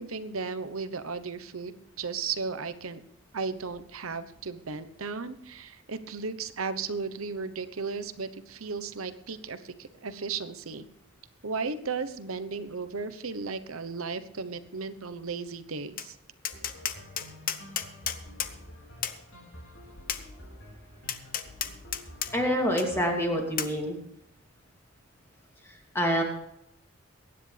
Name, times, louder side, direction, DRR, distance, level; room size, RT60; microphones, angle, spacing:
voice 1, 0.0-3.0 3.3-10.8 11.4-16.2, right 4 dB, 85° right, 12 dB, 1.0 m, -35 dB
Tap, 16.0-16.1 16.4-18.5 19.0-19.2 20.1-20.2 21.1-22.3 22.8-22.9 23.6-23.7, left 9 dB, 40° left, 0.8 m, -32 dB
sound 1, 16.5-23.3, left 1 dB, 65° left, 4.6 m, -48 dB
voice 2, 22.3-24.0 25.6-26.2, equal, 10° left, 0 dB, 2.6 m, -27 dB
23.0 x 10.0 x 3.4 m, 0.79 s
head